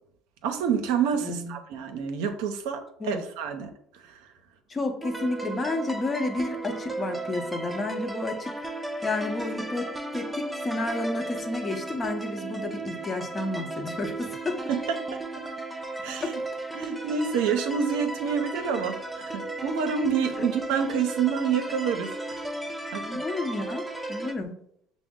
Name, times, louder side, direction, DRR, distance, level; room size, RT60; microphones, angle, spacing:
voice 1, 0.4-4.2 14.7-15.2 16.0-16.4 16.7-22.4 22.9-23.0, right 7 dB, 75° right, 6 dB, 0.5 m, -28 dB
voice 2, 1.2-1.6 3.0-3.2 4.7-8.6 9.0-14.6 16.2-16.4 20.4-20.5 23.0-23.8 24.1-24.5, left 2 dB, 30° left, 4 dB, 0.8 m, -31 dB
sound 1, 5.0-24.3, right 2 dB, 5° right, 0.6 m, -35 dB
5.9 x 2.0 x 3.6 m, 0.68 s
hypercardioid pair, 70°, 0 cm